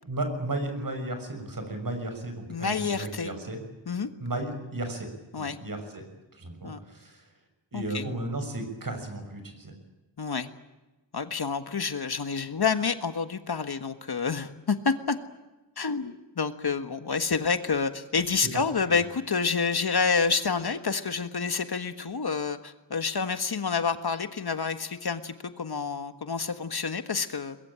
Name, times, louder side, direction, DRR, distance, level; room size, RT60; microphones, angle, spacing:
voice 1, 0.0-3.6 4.2-5.1 5.4-6.0 6.3-7.3 7.7-9.7 18.4-19.0, right 2 dB, 50° right, 6 dB, 6.4 m, -34 dB
voice 2, 2.5-3.3 3.9-4.1 5.3-5.6 6.6-6.8 7.7-8.1 10.2-10.5 11.1-15.2 15.8-27.6, left 5 dB, 60° left, 9 dB, 1.6 m, -28 dB
23.0 x 22.5 x 8.9 m, 1.1 s
wide cardioid pair, 95°, 43 cm